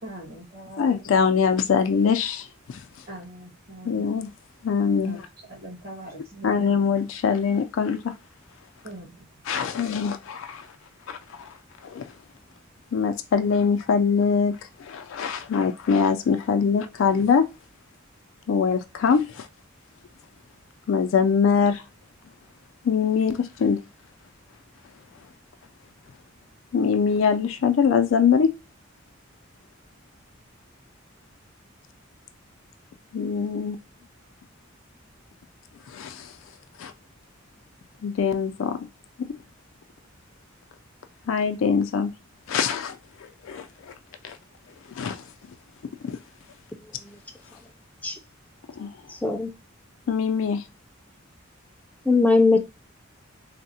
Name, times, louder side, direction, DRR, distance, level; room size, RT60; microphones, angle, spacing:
voice 1, 0.0-0.9 3.1-4.1 4.9-5.2 5.5-6.7 8.8-9.2, right 1 dB, 50° right, 1.5 m, -41 dB
voice 2, 0.8-2.8 3.9-4.3 4.6-5.2 6.4-8.1 9.5-10.7 11.1-11.5 11.8-12.0 12.9-17.5 18.5-19.5 20.9-21.8 22.8-23.8 26.7-28.5 33.1-33.8 35.9-36.3 36.8-36.9 38.0-38.9 39.2-39.4 41.3-42.1 42.5-43.0 43.4-43.7 44.2-44.4 44.9-45.2 46.0-46.2 48.8-48.9 50.1-50.6, left 6 dB, 80° left, 0.4 m, -23 dB
voice 3, 49.1-49.5 52.1-52.6, left 3 dB, 5° left, 0.4 m, -20 dB
3.5 x 2.0 x 2.7 m
head